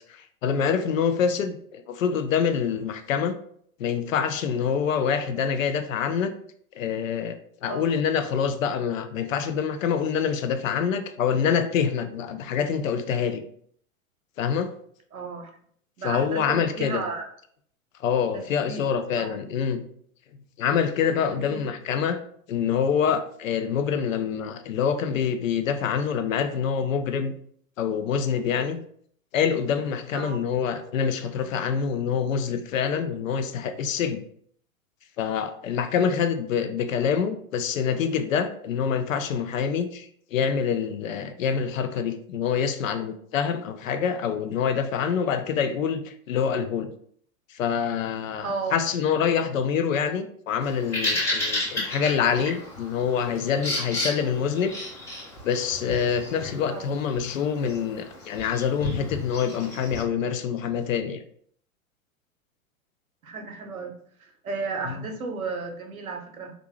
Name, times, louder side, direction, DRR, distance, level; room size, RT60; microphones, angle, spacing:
voice 1, 0.1-3.4 3.8-6.3 6.7-13.4 14.4-14.7 16.0-17.0 18.0-19.8 20.6-22.2 22.5-27.3 27.8-28.8 29.3-34.2 35.2-46.9 47.5-54.7 55.4-61.2 64.8-65.1, left 7 dB, 65° left, 10 dB, 0.5 m, -26 dB
voice 2, 15.1-15.5 16.0-17.3 18.3-18.8 19.2-19.3 21.2-21.6 30.1-30.4 35.9-36.1 48.4-48.8 56.7-56.9 63.2-66.5, right 4 dB, 80° right, 4 dB, 0.7 m, -34 dB
Bird vocalization bird call bird song, 50.6-60.0, left 1 dB, 5° left, 0.4 m, -33 dB
2.5 x 2.2 x 3.0 m, 0.62 s
figure-of-eight pair, 100°, 42 cm